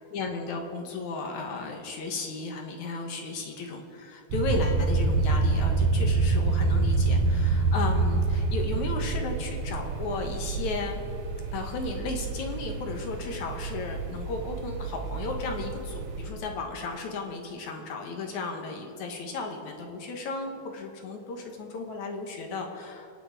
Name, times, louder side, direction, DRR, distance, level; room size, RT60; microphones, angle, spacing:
voice 1, 0.0-11.0 11.5-23.1, left 3 dB, 65° left, 3 dB, 2.4 m, -34 dB
sound 1, 4.3-16.3, right 3 dB, 60° right, 2.2 m, -27 dB
25.0 x 9.0 x 4.8 m, 2.8 s
omnidirectional pair, 4.2 m